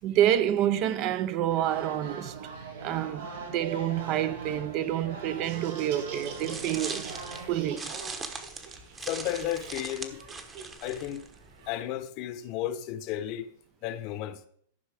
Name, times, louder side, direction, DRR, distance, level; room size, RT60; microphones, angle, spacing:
voice 1, 0.0-2.5 2.8-7.1 7.5-7.9, right 11 dB, 35° right, 0.5 m, -28 dB
sound 1, 1.5-7.5, right 4 dB, 90° right, 2.8 m, -41 dB
Laughter, 5.3-11.8, right 5 dB, 60° right, 2.8 m, -45 dB
sound 2, 6.1-11.7, right 4 dB, 15° right, 1.0 m, -40 dB
voice 2, 9.0-10.2 10.8-11.2 11.7-13.5 13.8-14.4, left 12 dB, 40° left, 0.8 m, -33 dB
13.5 x 5.5 x 4.9 m
supercardioid pair, 150°, 0 cm